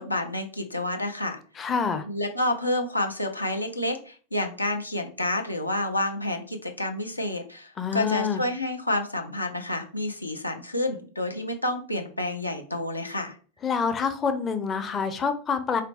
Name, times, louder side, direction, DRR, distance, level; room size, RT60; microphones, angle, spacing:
voice 1, 0.0-1.4 2.1-13.3, left 1 dB, 85° left, 4 dB, 0.6 m, -29 dB
voice 2, 1.6-2.0 7.8-8.4 13.6-15.8, left 6 dB, 25° left, 9 dB, 0.5 m, -27 dB
4.0 x 2.8 x 3.5 m, 0.40 s
figure-of-eight pair, 90°, 0 cm